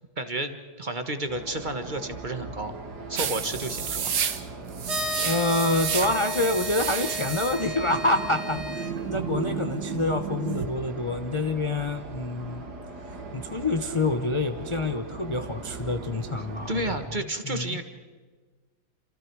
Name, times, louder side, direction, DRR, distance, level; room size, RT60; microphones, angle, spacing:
voice 1, 0.2-2.7 3.1-4.1 16.7-17.8, right 1 dB, 30° right, 7 dB, 1.4 m, -31 dB
sound 1, 1.3-17.1, right 3 dB, 65° right, 2.3 m, -40 dB
sound 2, 3.2-10.7, right 8 dB, 90° right, 1.9 m, -32 dB
sound 3, 4.8-8.9, left 3 dB, ahead, 1.5 m, -35 dB
voice 2, 5.2-12.6 13.1-17.0 17.4-17.8, left 2 dB, 30° left, 6 dB, 0.5 m, -27 dB
29.0 x 27.5 x 4.7 m, 1.4 s
omnidirectional pair, 1.9 m